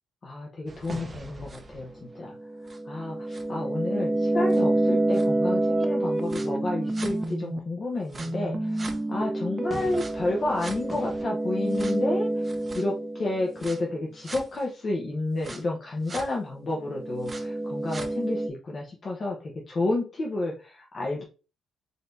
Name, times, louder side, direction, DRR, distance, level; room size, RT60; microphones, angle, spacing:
voice 1, 0.2-2.4 2.7-21.2, left 2 dB, 40° left, -2 dB, 0.9 m, -31 dB
sound 1, 0.7-7.6 8.1-13.8 14.3-14.4 15.4-15.6 16.1-16.2 16.7-18.5, right 2 dB, 25° right, 0.7 m, -28 dB
4.0 x 3.3 x 2.6 m, 0.35 s
cardioid pair, 90°, 0 cm